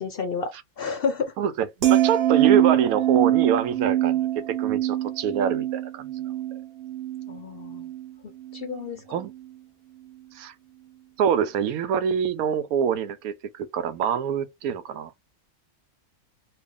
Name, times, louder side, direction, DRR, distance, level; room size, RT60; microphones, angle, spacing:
voice 1, 0.0-1.3 7.3-7.9 8.2-9.2, left 5 dB, 60° left, 0.6 m, -31 dB
sound 1, 1.8-8.1 8.4-8.8, right 13 dB, 60° right, 0.9 m, -24 dB
voice 2, 1.9-4.3 4.6-6.2 9.1-9.3 10.3-10.5 11.2-15.1, right 8 dB, 90° right, 1.1 m, -25 dB
3.3 x 2.3 x 3.5 m
omnidirectional pair, 1.5 m